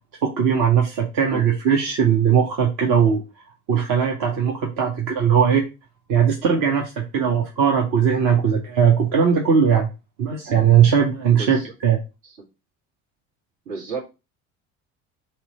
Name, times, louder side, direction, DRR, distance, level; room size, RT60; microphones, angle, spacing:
voice 1, 0.2-3.2 3.7-5.6 6.1-9.9 10.2-12.0, right 7 dB, 55° right, 1 dB, 1.0 m, -19 dB
voice 2, 11.3-11.7 12.2-12.4 13.7-14.0, right 4 dB, 70° right, -2 dB, 1.9 m, -33 dB
3.2 x 3.0 x 4.0 m, 0.28 s
hypercardioid pair, 60°, 41 cm